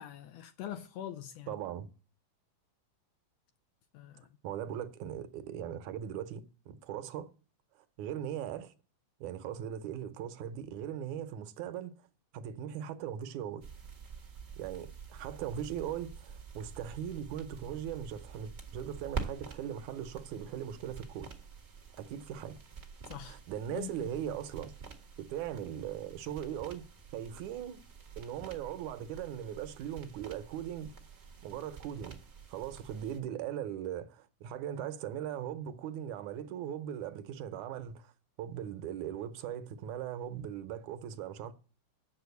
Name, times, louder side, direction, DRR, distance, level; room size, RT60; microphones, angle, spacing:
voice 1, 0.0-1.6 3.9-4.3 23.1-23.4 23.7-24.4, left 10 dB, 80° left, 1.5 m, -43 dB
voice 2, 1.5-1.9 4.4-7.3 7.8-8.7 9.2-12.1 12.3-13.7 14.6-21.3 21.9-22.6 23.2-24.7 25.2-27.8 28.2-30.9 31.4-32.2 32.5-38.1 38.4-41.5, right 10 dB, 75° right, 2.1 m, -39 dB
sound 1, 13.6-33.2, right 5 dB, 50° right, 0.7 m, -47 dB
7.3 x 7.0 x 8.2 m
omnidirectional pair, 3.6 m